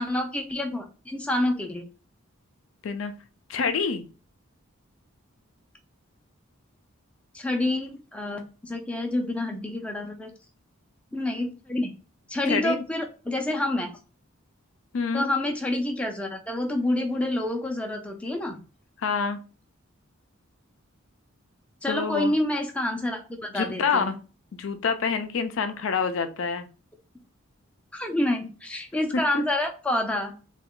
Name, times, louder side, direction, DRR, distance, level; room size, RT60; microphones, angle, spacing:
voice 1, 0.0-1.8 7.3-10.3 11.1-11.9 12.3-13.9 15.1-18.6 21.8-23.2 23.5-24.1 27.9-30.3, left 1 dB, 5° left, 3 dB, 0.4 m, -28 dB
voice 2, 3.5-4.0 12.5-12.8 14.9-15.3 19.0-19.4 21.9-22.3 23.5-24.2 24.6-26.7 29.1-29.4, left 5 dB, 70° left, 8 dB, 0.4 m, -27 dB
3.3 x 2.3 x 3.6 m, 0.35 s
head